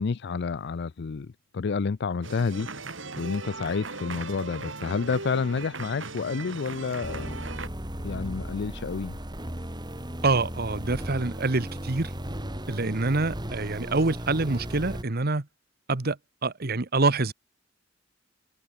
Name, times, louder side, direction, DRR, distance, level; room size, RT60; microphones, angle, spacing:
voice 1, 0.0-2.7 3.2-7.4 8.0-9.2, left 5 dB, 60° left, 0.5 m, -29 dB
sound 1, 2.2-7.7, right 3 dB, 75° right, 5.6 m, -38 dB
sound 2, 7.0-15.0, equal, 20° right, 4.0 m, -36 dB
voice 2, 10.2-12.1 12.7-15.5 15.9-17.3, right 3 dB, 55° right, 1.2 m, -26 dB
head